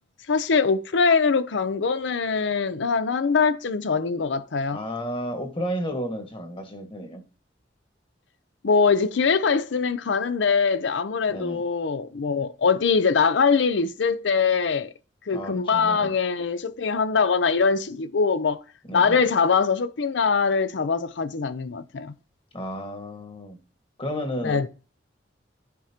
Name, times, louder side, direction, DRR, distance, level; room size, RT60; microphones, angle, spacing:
voice 1, 0.3-4.8 8.6-14.9 15.3-18.6 18.9-22.1 24.4-24.7, left 5 dB, 70° left, 0.6 m, -22 dB
voice 2, 4.7-7.2 11.3-11.6 15.3-16.1 18.9-19.2 22.5-23.6 24.0-24.7, equal, 30° left, 1.6 m, -32 dB
13.5 x 5.0 x 2.8 m
head